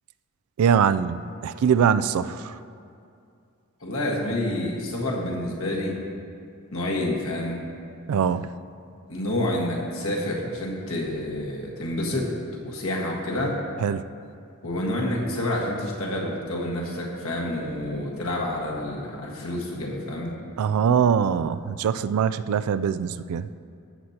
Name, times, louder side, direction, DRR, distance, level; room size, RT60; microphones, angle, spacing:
voice 1, 0.6-2.4 8.1-8.5 13.8-14.0 20.6-23.5, right 7 dB, 80° right, 14 dB, 0.3 m, -22 dB
voice 2, 3.8-6.0 6.7-7.6 9.1-12.3 12.6-13.5 14.6-20.3, left 1 dB, 70° left, -3 dB, 1.6 m, -28 dB
14.0 x 7.9 x 2.9 m, 2.4 s
head